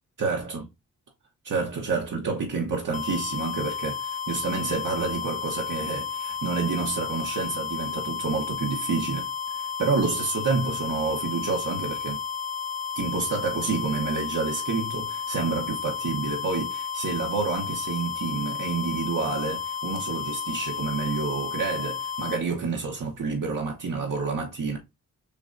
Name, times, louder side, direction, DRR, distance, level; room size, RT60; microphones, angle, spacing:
voice 1, 0.2-0.7 1.4-12.2 12.9-24.8, right 4 dB, 65° right, 1.1 m, -29 dB
sound 1, 2.9-22.4, left 7 dB, 25° left, 0.4 m, -32 dB
6.9 x 2.3 x 2.5 m
wide cardioid pair, 85°, 33 cm